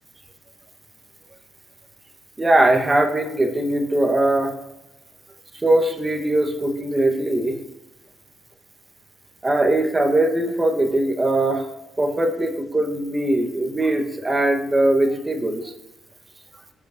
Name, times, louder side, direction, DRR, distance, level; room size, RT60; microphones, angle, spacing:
voice 1, 2.4-4.5 5.5-7.6 9.4-11.7 12.0-15.7, right 1 dB, 20° right, 5 dB, 1.7 m, -20 dB
18.5 x 8.4 x 3.0 m, 0.94 s
cardioid pair, 90°, 0 cm